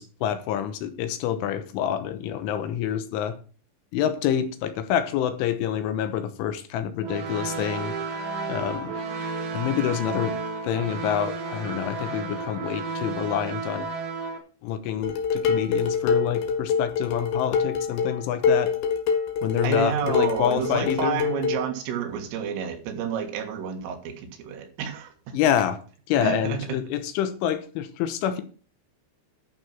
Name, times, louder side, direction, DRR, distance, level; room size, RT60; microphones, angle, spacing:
voice 1, 0.0-3.4 3.9-7.9 8.5-8.9 9.5-10.3 10.6-13.9 14.6-18.7 19.4-21.2 25.3-25.8 26.1-28.4, left 9 dB, 80° left, 10 dB, 3.4 m, -27 dB
sound 1, 7.0-14.4, right 4 dB, 60° right, 3.4 m, -32 dB
Dishes pots and pans, 15.0-21.6, left 6 dB, 65° left, 2.8 m, -25 dB
voice 2, 19.6-25.4 26.2-26.6, right 8 dB, 80° right, 5 dB, 4.3 m, -30 dB
11.5 x 6.0 x 5.9 m, 0.38 s
omnidirectional pair, 5.8 m